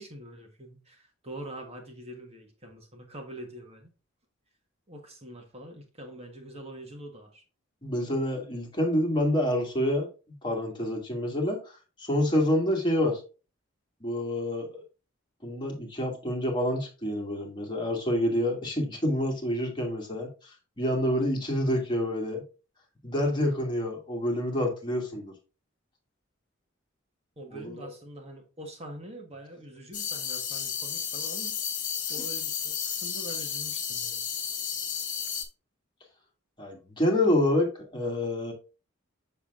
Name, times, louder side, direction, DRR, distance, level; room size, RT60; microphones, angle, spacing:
voice 1, 0.0-3.9 4.9-7.4 27.4-31.6 32.1-34.2, right 1 dB, 30° right, 1.5 m, -44 dB
voice 2, 7.8-10.1 10.4-11.6 12.0-13.2 14.0-14.8 15.4-20.3 20.8-22.4 23.0-25.3 27.5-27.9 36.6-38.5, left 1 dB, 25° left, 2.3 m, -27 dB
sound 1, 29.9-35.4, left 7 dB, 40° left, 1.4 m, -32 dB
7.1 x 6.8 x 2.5 m
head